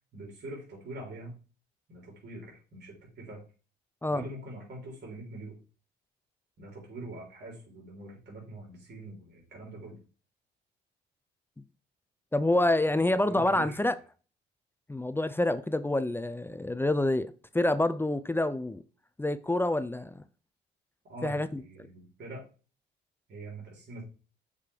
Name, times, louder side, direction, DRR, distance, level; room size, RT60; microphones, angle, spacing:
voice 1, 0.1-1.4 1.9-3.4 4.1-5.6 6.6-10.0 12.8-14.0 21.1-22.4 23.3-24.0, right 2 dB, 60° right, 3.9 m, -44 dB
voice 2, 12.3-13.9 14.9-18.8 19.2-20.1 21.2-21.6, left 1 dB, 10° left, 0.4 m, -27 dB
6.7 x 3.5 x 4.9 m
cardioid pair, 90°, 20 cm